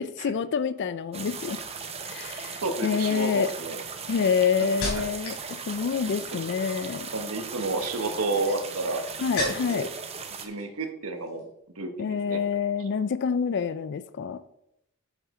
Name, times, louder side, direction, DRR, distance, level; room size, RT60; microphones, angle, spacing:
voice 1, 0.0-1.6 2.1-3.5 4.1-5.4 5.7-7.1 9.2-9.9 12.0-14.4, left 6 dB, 55° left, 14 dB, 0.4 m, -27 dB
sound 1, 1.1-10.5, right 5 dB, 30° right, 0.9 m, -38 dB
sound 2, 2.1-2.3 3.1-5.5 5.7-6.3 7.5-9.9 10.2-10.9 11.2-11.4, left 1 dB, 75° left, 3.4 m, -37 dB
voice 2, 2.6-3.8 4.6-5.0 6.3-6.4 7.1-9.0 9.4-9.9 10.4-11.4 11.8-12.4, right 3 dB, 80° right, 5 dB, 1.2 m, -31 dB
8.2 x 7.4 x 3.7 m, 0.80 s
head